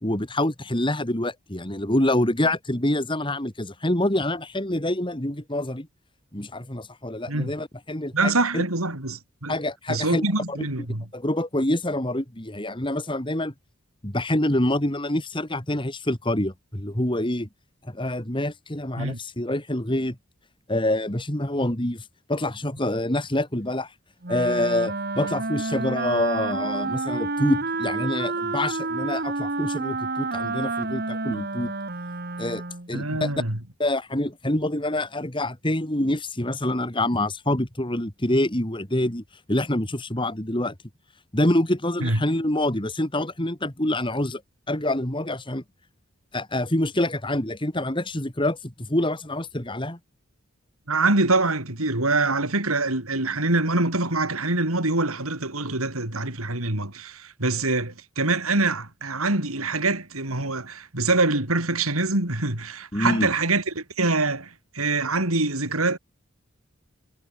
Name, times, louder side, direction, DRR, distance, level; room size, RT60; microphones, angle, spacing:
voice 1, 0.0-5.9 6.3-8.6 9.5-10.6 11.1-13.5 14.0-17.5 17.9-20.2 20.7-22.0 22.3-23.9 24.3-31.7 32.4-32.6 32.9-33.3 33.8-39.2 39.5-40.7 41.3-44.4 44.7-45.6 46.3-50.0 62.9-63.3, left 1 dB, 25° left, 2.5 m, -26 dB
voice 2, 8.1-9.6 9.9-11.1 19.0-19.2 32.9-33.6 42.0-42.2 50.9-66.0, right 2 dB, 90° right, 4.9 m, -24 dB
Wind instrument woodwind instrument, 24.2-32.9, right 3 dB, 45° right, 2.0 m, -29 dB
head